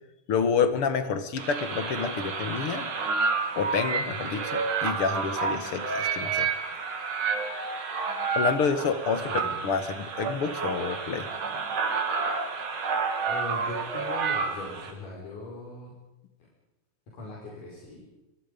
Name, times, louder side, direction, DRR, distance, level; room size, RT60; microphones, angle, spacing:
voice 1, 0.3-2.9 3.6-6.5 8.3-9.3 9.6-11.3, left 5 dB, 50° left, 10 dB, 2.1 m, -28 dB
sound 1, 1.4-14.9, right 5 dB, 70° right, 4.3 m, -30 dB
voice 2, 9.2-9.5 13.3-16.0 17.1-18.1, left 2 dB, 75° left, -4 dB, 6.5 m, -40 dB
26.5 x 25.0 x 5.3 m, 0.95 s
omnidirectional pair, 3.7 m